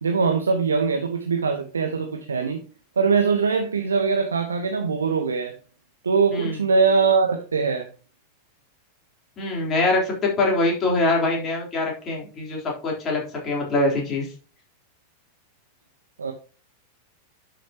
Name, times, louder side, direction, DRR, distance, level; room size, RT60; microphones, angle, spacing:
voice 1, 0.0-2.6 3.0-5.5 6.0-7.9 16.2-16.3, right 5 dB, 75° right, 5 dB, 0.9 m, -22 dB
voice 2, 9.4-14.3, left 2 dB, 25° left, -2 dB, 3.8 m, -23 dB
11.0 x 6.3 x 2.9 m, 0.37 s
figure-of-eight pair, 90°, 0 cm